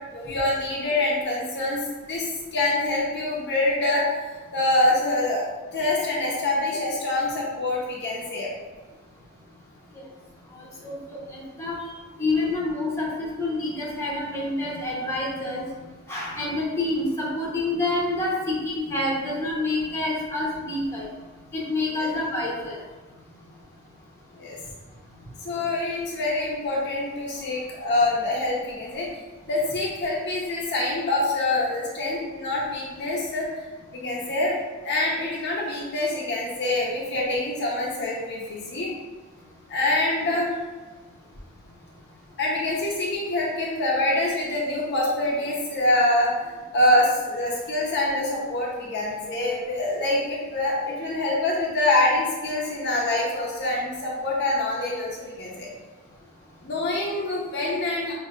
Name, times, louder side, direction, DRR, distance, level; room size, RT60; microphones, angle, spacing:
voice 1, 0.1-1.8 2.1-4.0 4.5-8.5 22.0-22.1 24.4-24.6 25.4-29.1 29.5-33.5 33.9-34.6 34.8-38.9 39.7-40.5 42.4-55.7 56.6-58.1, left 2 dB, 50° left, -4 dB, 0.7 m, -25 dB
voice 2, 11.3-11.7 12.2-15.6 16.1-21.0 21.5-22.8, left 2 dB, 10° left, -6 dB, 0.8 m, -27 dB
5.6 x 2.7 x 2.3 m, 1.3 s
head